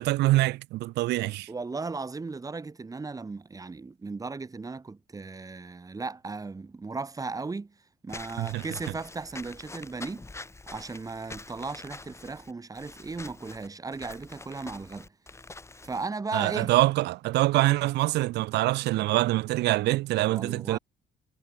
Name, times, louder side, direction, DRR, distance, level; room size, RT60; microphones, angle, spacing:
voice 1, 0.0-1.5 8.4-8.6 16.3-20.8, right 18 dB, 85° right, 2.9 m, -25 dB
voice 2, 1.5-7.8 8.0-10.3 10.7-15.1 15.8-16.7 20.3-20.8, right 4 dB, 20° right, 4.0 m, -36 dB
Walk footsteps / Squeak, 8.1-16.1, left 3 dB, 15° left, 6.1 m, -45 dB
cardioid pair, 110°, 17 cm